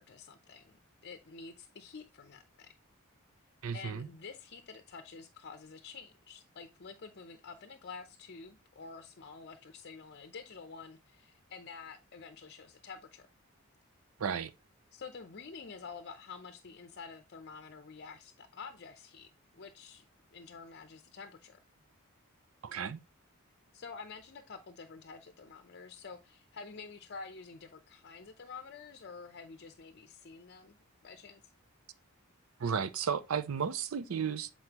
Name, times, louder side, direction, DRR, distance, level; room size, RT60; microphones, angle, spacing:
voice 1, 0.0-2.7 3.7-13.3 14.9-19.3 19.5-21.6 23.7-30.8 31.0-31.4, left 5 dB, 50° left, 0.6 m, -49 dB
voice 2, 3.6-4.1 14.2-14.5 22.6-23.0 32.6-34.5, right 7 dB, 70° right, 0.5 m, -33 dB
7.8 x 4.2 x 2.9 m
head